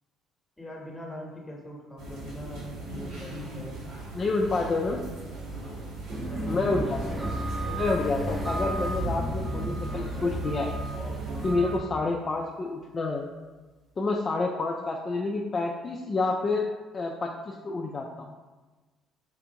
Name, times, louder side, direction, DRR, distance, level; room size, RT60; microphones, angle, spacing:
voice 1, 0.6-3.8 6.3-7.4, equal, 15° left, -1 dB, 0.9 m, -42 dB
sound 1, 2.0-11.5, right 2 dB, 70° right, 0.9 m, -39 dB
voice 2, 4.1-5.0 6.5-7.0 7.7-10.7 11.4-13.3 14.0-16.7 16.9-18.4, left 3 dB, 40° left, -1 dB, 0.3 m, -28 dB
sound 2, 6.1-11.8, right 1 dB, 20° right, 0.6 m, -32 dB
sound 3, 12.1-13.0 13.4-13.9, equal, 40° right, 0.9 m, -54 dB
3.3 x 2.4 x 2.8 m, 1.2 s
hypercardioid pair, 60°, 0 cm